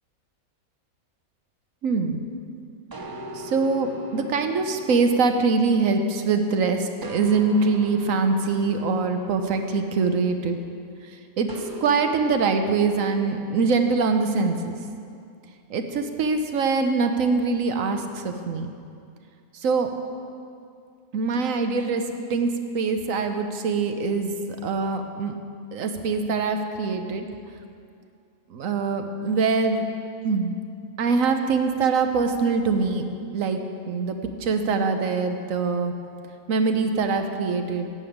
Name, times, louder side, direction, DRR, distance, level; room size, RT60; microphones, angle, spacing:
voice 1, 1.8-2.2 3.3-10.6 11.0-11.5 11.8-14.8 15.7-18.7 19.5-19.9 21.1-22.0 22.3-25.4 25.7-27.3 28.5-29.9 30.2-30.5 31.0-33.1 33.3-33.6 33.9-35.9 36.5-37.9, right 4 dB, 70° right, 6 dB, 1.2 m, -23 dB
sound 1, 2.9-6.5 7.0-10.7 11.5-14.2, equal, 30° right, 0.4 m, -41 dB
9.6 x 7.0 x 8.6 m, 2.4 s
omnidirectional pair, 1.5 m